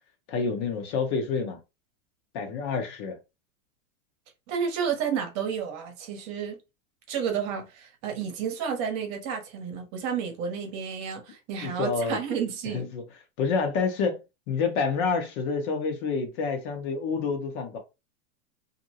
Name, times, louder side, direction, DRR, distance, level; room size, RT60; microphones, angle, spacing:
voice 1, 0.3-1.6 2.3-3.2 11.6-12.2 12.7-13.0 13.4-14.2 14.5-17.8, left 5 dB, 55° left, 1.0 m, -28 dB
voice 2, 4.5-6.6 7.1-12.9, right 7 dB, 45° right, 0.9 m, -31 dB
2.6 x 2.1 x 2.8 m
hypercardioid pair, 125°, 41 cm